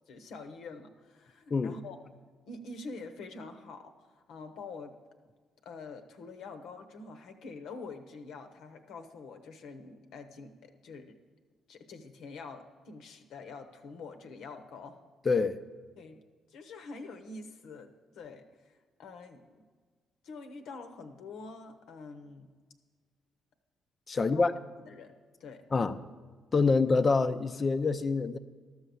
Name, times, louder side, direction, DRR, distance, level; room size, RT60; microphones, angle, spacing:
voice 1, 0.1-2.0 2.5-4.9 5.6-11.1 11.7-15.0 16.0-16.2 16.5-19.6 20.2-22.5 24.1-24.4 24.8-25.1 25.4-25.6, left 3 dB, 70° left, 0.9 m, -46 dB
voice 2, 15.2-15.6 24.1-24.5 25.7-26.0 26.5-28.4, left 4 dB, 40° left, 0.5 m, -26 dB
12.5 x 6.3 x 6.9 m
hypercardioid pair, 50°, 0 cm